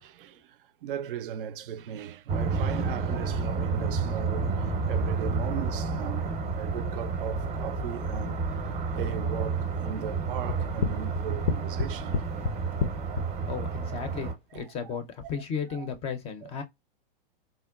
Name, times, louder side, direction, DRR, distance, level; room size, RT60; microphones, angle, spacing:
voice 1, 0.0-12.2 14.5-15.0 15.7-15.9 16.4-16.6, right 9 dB, 65° right, 0.4 m, -38 dB
sound 1, 2.3-14.3, right 4 dB, 25° right, 0.6 m, -30 dB
sound 2, 10.5-13.3, left 5 dB, 75° left, 0.6 m, -28 dB
voice 2, 13.5-16.6, left 6 dB, 20° left, 0.4 m, -34 dB
3.7 x 2.1 x 2.3 m
hypercardioid pair, 120°, 29 cm